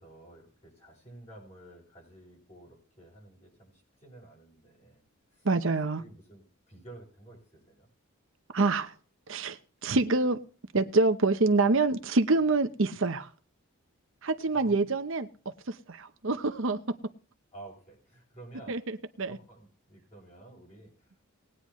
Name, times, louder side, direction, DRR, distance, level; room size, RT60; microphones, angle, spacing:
voice 1, 0.0-5.0 5.3-5.5 6.0-7.9 14.5-14.8 17.5-18.8 19.3-21.1, right 2 dB, 30° left, 7.0 m, -51 dB
voice 2, 5.4-6.0 8.5-8.9 9.3-10.4 10.7-13.3 14.2-16.8 18.7-19.4, right 3 dB, 60° right, 0.8 m, -26 dB
19.5 x 9.8 x 3.1 m
head